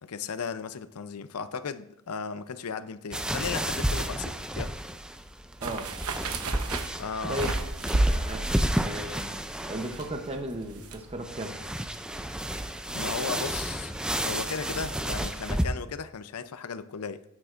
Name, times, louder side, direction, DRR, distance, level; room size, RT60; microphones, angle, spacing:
voice 1, 0.0-4.7 7.0-7.4 12.9-13.9 14.2-17.2, left 5 dB, 80° left, 0.6 m, -36 dB
sound 1, 3.1-15.7, right 1 dB, 5° right, 0.4 m, -32 dB
sound 2, 5.6-11.0 11.3-11.4, right 2 dB, 80° right, 1.0 m, -31 dB
voice 2, 8.1-8.4 8.8-9.4 9.7-11.6, right 1 dB, 25° right, 0.8 m, -35 dB
13.0 x 9.5 x 2.5 m
head